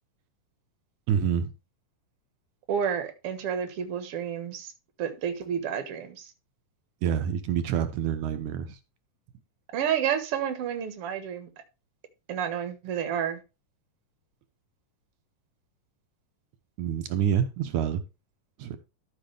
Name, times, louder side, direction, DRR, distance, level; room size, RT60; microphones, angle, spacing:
voice 1, 1.1-1.5 7.0-8.8 16.8-18.0 18.6-18.8, right 8 dB, 70° right, 2.1 m, -27 dB
voice 2, 2.7-4.7 5.0-6.3 9.7-11.5 12.3-13.4, right 8 dB, 55° right, 2.0 m, -30 dB
13.0 x 6.2 x 3.3 m
omnidirectional pair, 3.8 m